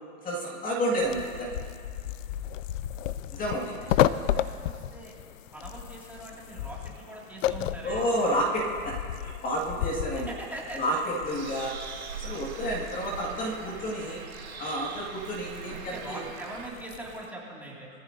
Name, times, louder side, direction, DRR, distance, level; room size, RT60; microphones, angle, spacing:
voice 1, 0.2-1.6 3.3-3.7 7.8-8.9 9.2-10.3 10.8-11.0 11.2-11.7 12.2-14.2 14.6-16.2, equal, 20° left, -3 dB, 2.0 m, -30 dB
sound 1, 1.0-17.3, left 11 dB, 70° left, 0.6 m, -34 dB
voice 2, 3.8-5.1 5.5-8.1 10.1-10.8 15.7-17.9, right 1 dB, 5° right, -5 dB, 2.3 m, -42 dB
Bird, 11.3-16.7, right 5 dB, 90° right, 3.1 m, -41 dB
22.0 x 15.0 x 2.7 m, 2.2 s
hypercardioid pair, 140°, 41 cm